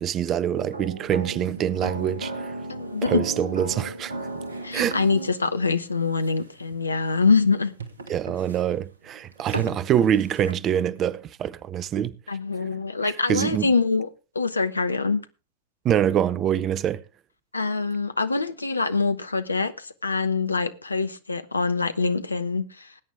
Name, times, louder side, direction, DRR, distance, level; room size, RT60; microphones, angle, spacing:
voice 1, 0.0-2.5 3.0-4.1 4.7-5.0 8.1-12.2 13.0-13.7 15.8-17.0, right 9 dB, 30° right, 0.6 m, -25 dB
sound 1, 0.5-10.5, right 2 dB, 70° right, 1.6 m, -36 dB
voice 2, 2.7-3.2 4.6-7.7 12.3-14.1 14.3-15.2 17.5-22.9, left 4 dB, 80° left, 0.9 m, -24 dB
20.0 x 9.2 x 3.4 m
figure-of-eight pair, 90°, 0 cm